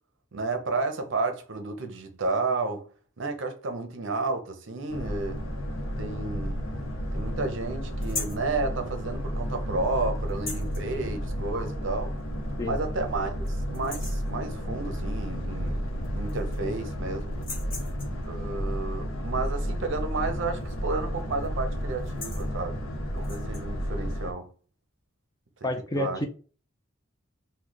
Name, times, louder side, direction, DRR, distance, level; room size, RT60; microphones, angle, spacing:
voice 1, 0.3-2.9 3.2-5.4 6.0-6.7 7.1-12.1 12.6-13.4 13.7-17.4 18.2-22.8 23.1-24.5 25.6-25.7 26.0-26.2, right 3 dB, 60° right, 0.6 m, -32 dB
Boat Water vehicle, 4.9-24.3, equal, 75° left, 0.8 m, -32 dB
sound 1, 8.0-8.5 10.3-10.8 12.2-12.3 12.8-12.9 13.2-13.5 13.7-14.3 15.7-15.8 16.0-16.7 17.3-18.2 20.6-20.9 21.2-21.5 21.9-22.5 23.2-23.6, left 3 dB, 45° left, 1.3 m, -38 dB
voice 2, 25.6-26.3, left 1 dB, 15° left, 0.4 m, -29 dB
3.2 x 2.2 x 3.8 m
head